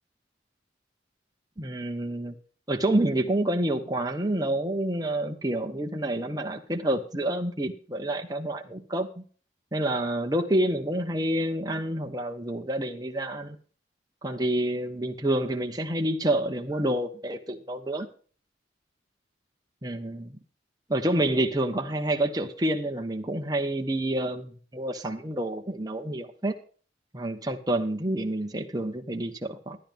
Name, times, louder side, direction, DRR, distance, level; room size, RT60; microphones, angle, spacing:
voice 1, 1.6-2.3 2.7-9.2 9.7-13.6 14.2-18.1 19.8-20.3 20.9-26.6 27.1-29.8, right 1 dB, 20° right, 4 dB, 1.0 m, -28 dB
12.5 x 10.5 x 3.5 m, 0.41 s
head